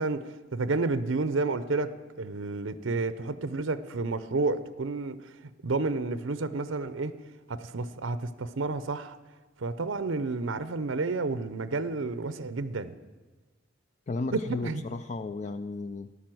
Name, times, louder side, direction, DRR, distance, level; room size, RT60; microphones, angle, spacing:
voice 1, 0.0-1.9 2.2-5.2 5.6-7.1 7.5-9.2 9.6-12.9 14.3-14.8, right 3 dB, 75° right, 13 dB, 0.7 m, -30 dB
voice 2, 14.1-16.1, left 3 dB, 35° left, 10 dB, 0.4 m, -34 dB
13.5 x 11.5 x 7.7 m, 1.3 s
head